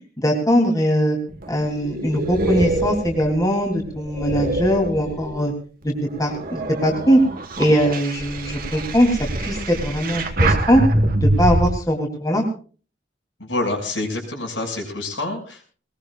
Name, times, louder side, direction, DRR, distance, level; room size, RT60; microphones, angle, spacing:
voice 1, 0.2-1.2 1.5-5.5 5.8-5.9 6.2-7.2 7.6-9.1 9.4-10.8 11.2-12.4, equal, 20° left, 0 dB, 3.3 m, -20 dB
sound 1, 1.3-5.5 6.0-11.7, right 1 dB, 50° right, 1.6 m, -25 dB
voice 2, 13.4-15.6, left 2 dB, 80° left, 2 dB, 6.7 m, -27 dB
21.5 x 20.5 x 2.5 m, 0.38 s
head